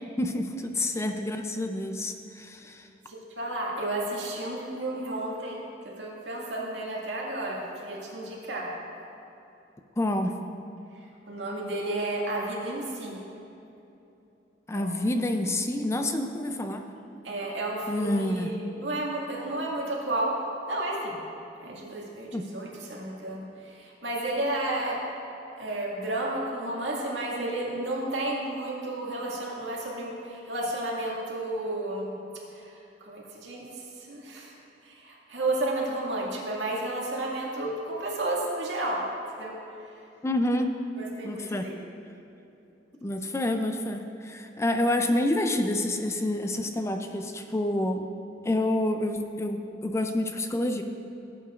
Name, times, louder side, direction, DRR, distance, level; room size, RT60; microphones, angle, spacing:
voice 1, 0.2-2.9 10.0-10.4 14.7-16.9 17.9-18.6 22.3-22.5 40.2-40.7 41.2-41.7 43.0-48.1 48.4-50.8, left 1 dB, 15° left, 6 dB, 0.4 m, -28 dB
voice 2, 3.1-8.7 11.3-13.2 14.7-14.9 17.2-21.2 21.6-25.0 25.6-32.1 32.5-34.5 34.8-39.1 39.4-39.5 41.0-41.8, right 1 dB, 80° right, -3 dB, 2.0 m, -32 dB
16.5 x 8.4 x 2.5 m, 2.8 s
head